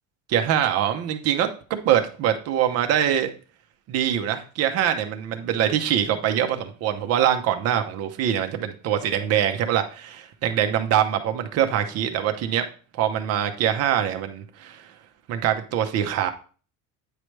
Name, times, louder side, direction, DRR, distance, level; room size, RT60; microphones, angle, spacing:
voice 1, 0.3-3.3 3.9-12.6 12.9-14.9 15.3-16.3, right 10 dB, 40° right, 6 dB, 0.8 m, -23 dB
9.0 x 4.8 x 3.2 m, 0.39 s
cardioid pair, 175°, 36 cm